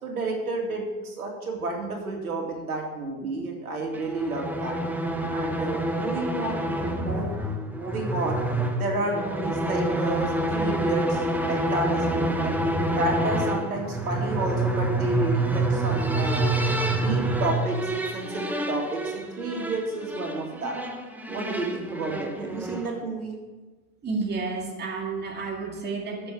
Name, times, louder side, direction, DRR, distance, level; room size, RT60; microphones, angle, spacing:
voice 1, 0.0-4.8 5.3-8.4 8.8-11.2 11.5-12.5 12.9-16.5 16.9-20.8 21.3-23.3, right 2 dB, 90° right, 0 dB, 2.4 m, -30 dB
sound 1, 3.9-23.0, right 1 dB, 5° right, 0.9 m, -27 dB
voice 2, 24.0-26.3, right 4 dB, 25° right, 0 dB, 2.1 m, -31 dB
7.9 x 6.8 x 8.4 m, 1.2 s
hypercardioid pair, 95°, 42 cm